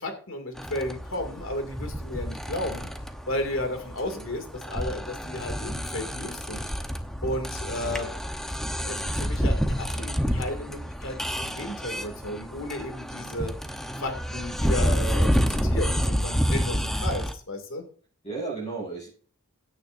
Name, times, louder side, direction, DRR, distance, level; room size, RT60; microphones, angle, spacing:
voice 1, 0.0-2.9 3.3-6.7 7.2-8.1 8.5-13.5 14.0-17.8, left 1 dB, 65° left, 5 dB, 2.5 m, -33 dB
sound 1, 0.6-17.3, equal, ahead, 0.9 m, -29 dB
voice 2, 18.2-19.1, right 3 dB, 30° left, -5 dB, 6.2 m, -35 dB
16.5 x 9.1 x 2.6 m, 0.41 s
head